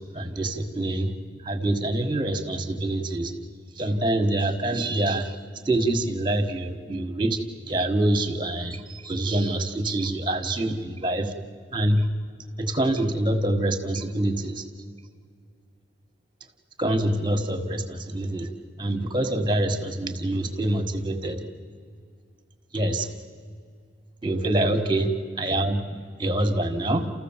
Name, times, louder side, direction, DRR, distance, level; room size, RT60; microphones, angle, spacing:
voice 1, 0.1-1.1 1.4-3.3 3.7-5.3 5.6-7.4 7.7-11.3 11.7-12.1 12.6-14.6 16.8-18.5 18.8-21.4 22.7-23.1 24.2-27.1, right 1 dB, 25° right, 7 dB, 1.6 m, -25 dB
30.0 x 14.5 x 7.4 m, 2.2 s
head